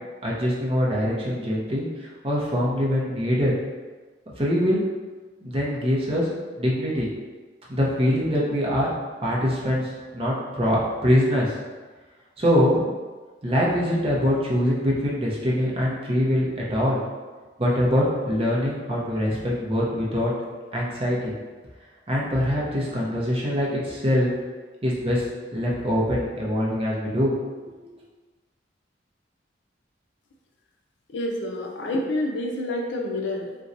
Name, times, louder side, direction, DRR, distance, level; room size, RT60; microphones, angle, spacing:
voice 1, 0.2-3.5 4.4-4.8 5.4-6.3 6.6-7.1 7.7-8.9 9.2-11.6 12.4-12.9 13.4-17.0 17.6-20.3 20.7-21.3 22.1-24.3 24.8-25.2 25.5-27.3 27.8-27.9, equal, 30° right, -5 dB, 0.6 m, -23 dB
voice 2, 31.1-33.6, left 1 dB, 75° left, 1 dB, 0.5 m, -28 dB
4.0 x 2.2 x 2.5 m, 1.4 s
head